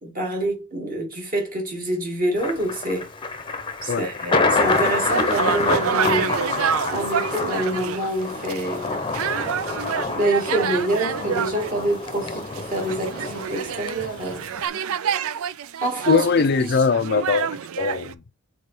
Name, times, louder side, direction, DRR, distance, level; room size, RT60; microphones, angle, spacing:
voice 1, 0.0-3.1 3.8-6.4 6.9-9.0 10.1-14.4 15.8-16.3 16.6-16.8, right 1 dB, 40° right, 2.4 m, -26 dB
Thunder, 2.4-14.7, left 3 dB, 25° left, 0.8 m, -27 dB
sound 1, 4.5-18.1, right 8 dB, 70° right, 0.4 m, -28 dB
voice 2, 16.1-17.5 17.8-18.2, left 5 dB, 50° left, 0.5 m, -20 dB
5.3 x 4.1 x 4.4 m
head